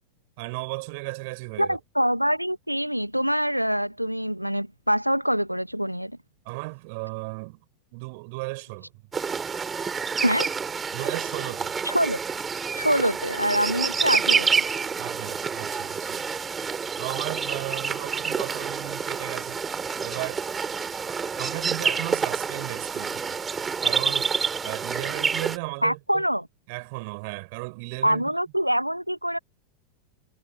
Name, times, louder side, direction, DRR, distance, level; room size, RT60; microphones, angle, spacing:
voice 1, 0.4-1.8 6.4-7.6 7.9-8.9 10.9-11.8 15.0-16.2 17.0-19.6 20.0-20.4 21.3-23.4 23.8-24.3 24.6-26.2 26.7-28.3, right 29 dB, 45° right, 4.7 m, -35 dB
voice 2, 1.6-6.1 10.2-10.5 11.8-12.2 12.7-14.6 25.8-26.5 28.0-29.4, equal, 90° right, 1.4 m, -25 dB
sound 1, 9.1-25.6, right 6 dB, 15° right, 4.1 m, -28 dB
figure-of-eight pair, 90°, 0 cm